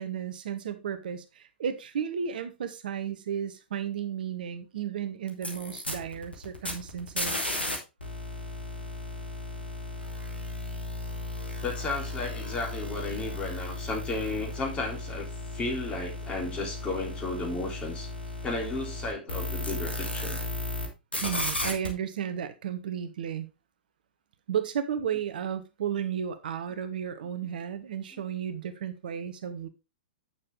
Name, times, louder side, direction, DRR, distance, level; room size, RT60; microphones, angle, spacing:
voice 1, 0.0-7.4 21.2-23.5 24.5-29.7, right 8 dB, 60° right, 1.0 m, -33 dB
sound 1, 5.3-7.8 8.0-20.9 21.1-21.9, left 2 dB, 85° left, 2.5 m, -35 dB
voice 2, 11.6-15.3 15.5-18.1 18.4-20.4 28.1-28.2, left 2 dB, 20° left, 3.2 m, -33 dB
8.7 x 6.8 x 3.5 m
figure-of-eight pair, 105°, 5 cm